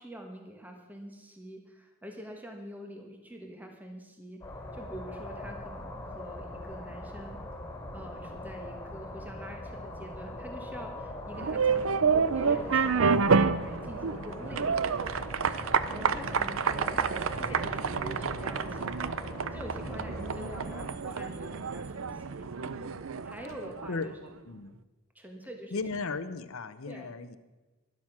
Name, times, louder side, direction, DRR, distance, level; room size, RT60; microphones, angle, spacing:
voice 1, 0.0-4.4 4.7-7.4 7.9-15.0 15.4-22.5 23.2-24.4 25.1-26.0 26.8-27.1, equal, 5° right, 3 dB, 1.5 m, -45 dB
sound 1, 4.4-20.9, left 1 dB, 10° left, 4.3 m, -42 dB
sound 2, 11.3-24.1, right 5 dB, 65° right, 0.5 m, -29 dB
voice 2, 16.0-16.4 17.4-17.7 19.8-20.1 22.7-23.0 23.9-24.1 24.5-24.8 25.7-27.4, left 4 dB, 70° left, 12 dB, 0.8 m, -37 dB
12.0 x 11.5 x 6.1 m, 1.2 s
head